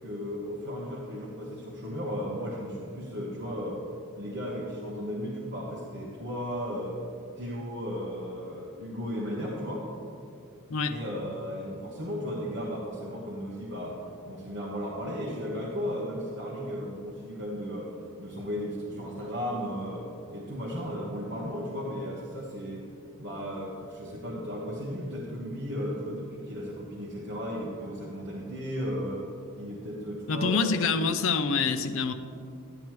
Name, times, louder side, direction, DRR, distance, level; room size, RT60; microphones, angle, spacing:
voice 1, 0.0-3.8 4.1-7.0 7.4-9.9 10.9-17.9 18.2-22.9 23.2-29.3 29.6-30.8, equal, 50° right, -5 dB, 1.2 m, -35 dB
voice 2, 30.3-32.1, left 5 dB, 65° left, 9 dB, 0.5 m, -26 dB
10.5 x 10.5 x 3.2 m, 2.5 s
head